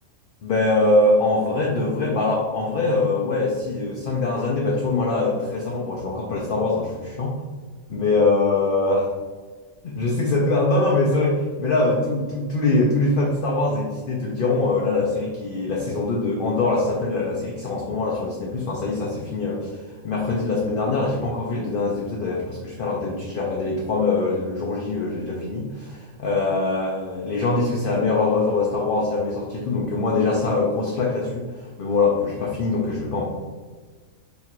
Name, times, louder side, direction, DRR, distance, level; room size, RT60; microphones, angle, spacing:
voice 1, 0.4-7.4 7.9-9.1 9.8-19.8 20.0-33.3, left 3 dB, 65° left, -3 dB, 0.5 m, -23 dB
3.0 x 2.5 x 4.3 m, 1.4 s
omnidirectional pair, 1.5 m